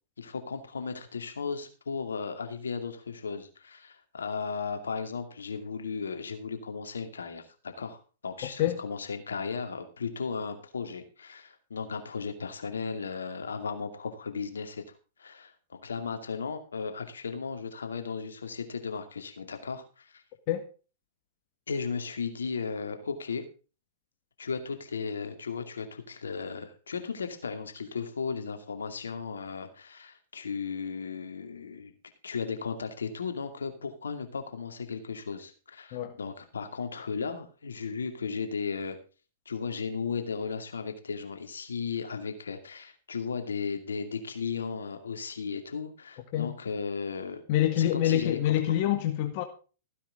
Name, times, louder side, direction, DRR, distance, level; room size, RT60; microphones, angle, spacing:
voice 1, 0.2-14.8 15.2-20.2 21.7-23.5 24.4-31.9 32.2-39.0 39.5-47.4 47.8-48.4 48.7-48.8, left 5 dB, 80° left, 2.4 m, -35 dB
voice 2, 47.5-49.4, left 12 dB, 50° left, 1.8 m, -26 dB
15.5 x 10.0 x 3.7 m
hypercardioid pair, 110°, 0 cm